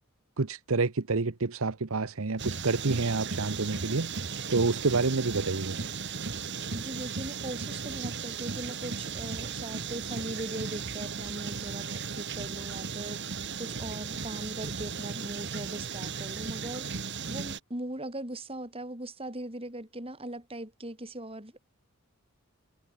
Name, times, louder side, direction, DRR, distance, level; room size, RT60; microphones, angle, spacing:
voice 1, 0.4-5.9, right 3 dB, 70° right, 0.9 m, -28 dB
sound 1, 2.4-17.6, right 5 dB, 50° right, 1.4 m, -36 dB
voice 2, 6.7-21.6, right 1 dB, 25° right, 4.0 m, -40 dB
head